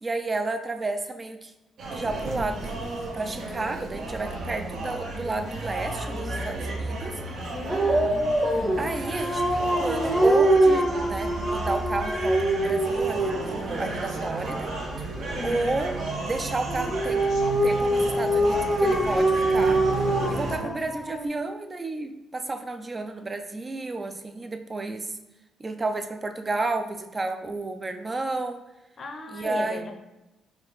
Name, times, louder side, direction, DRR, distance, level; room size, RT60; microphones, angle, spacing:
voice 1, 0.0-1.5 1.9-7.2 8.8-14.7 15.4-19.9 20.3-25.1 25.6-28.7 29.3-29.9, right 2 dB, 30° right, 7 dB, 0.4 m, -31 dB
sound 1, 1.8-20.6, right 2 dB, 70° right, 0.7 m, -33 dB
voice 2, 7.5-9.0 15.4-15.6 20.5-20.8 29.0-29.9, left 3 dB, 45° left, 4 dB, 0.6 m, -37 dB
Dog, 7.7-13.5 16.7-21.3, right 1 dB, 5° right, 0.7 m, -24 dB
4.4 x 2.4 x 3.1 m, 0.99 s
cardioid pair, 90°, 0 cm